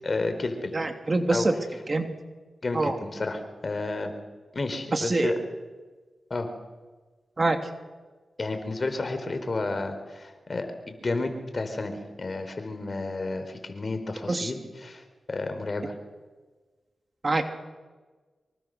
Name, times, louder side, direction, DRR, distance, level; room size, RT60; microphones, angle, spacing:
voice 1, 0.0-0.7 1.3-1.5 2.6-4.1 4.5-5.3 6.3-6.5 8.4-15.9, left 3 dB, 50° left, 7 dB, 4.4 m, -31 dB
voice 2, 0.7-1.5 1.9-2.1 2.7-2.9 4.9-5.3 7.4-7.6 14.3-14.5 17.2-17.5, right 2 dB, 45° right, 6 dB, 2.8 m, -24 dB
25.0 x 24.0 x 6.8 m, 1.3 s
cardioid pair, 45°, 0 cm